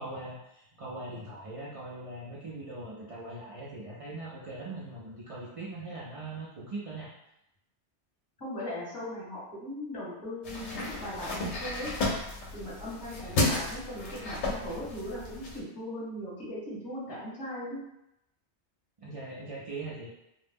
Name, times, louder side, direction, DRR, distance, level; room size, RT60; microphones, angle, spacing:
voice 1, 0.0-7.1 19.0-20.1, right 2 dB, 65° right, -7 dB, 0.3 m, -41 dB
voice 2, 8.4-11.9 12.5-17.8, left 1 dB, 20° left, -8 dB, 1.1 m, -39 dB
sound 1, 10.4-15.6, left 2 dB, 75° left, 0.9 m, -33 dB
2.3 x 2.0 x 3.3 m, 0.83 s
omnidirectional pair, 1.2 m